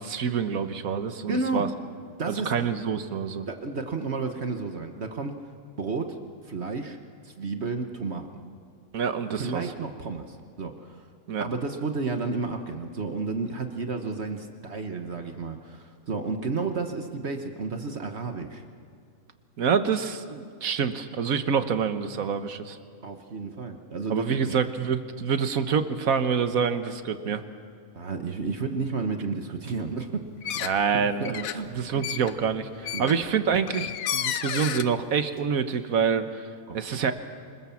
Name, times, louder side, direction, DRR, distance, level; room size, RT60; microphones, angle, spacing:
voice 1, 0.0-1.7 2.3-3.5 8.9-9.7 11.3-11.5 19.6-22.8 24.1-27.4 30.6-31.5 31.7-36.5 36.7-37.1, right 6 dB, 80° right, 9 dB, 1.5 m, -26 dB
voice 2, 1.3-1.7 2.2-2.5 3.5-5.4 5.8-6.2 6.4-7.0 7.2-8.3 9.3-11.0 11.4-18.6 23.0-24.6 27.9-30.6 30.9-31.9 32.9-33.2 36.7-37.0, right 4 dB, 50° right, 5 dB, 1.5 m, -32 dB
sound 1, 30.4-30.9 31.2-34.9, left 10 dB, 80° left, 1.2 m, -32 dB
26.0 x 21.0 x 7.2 m, 2.3 s
omnidirectional pair, 1.4 m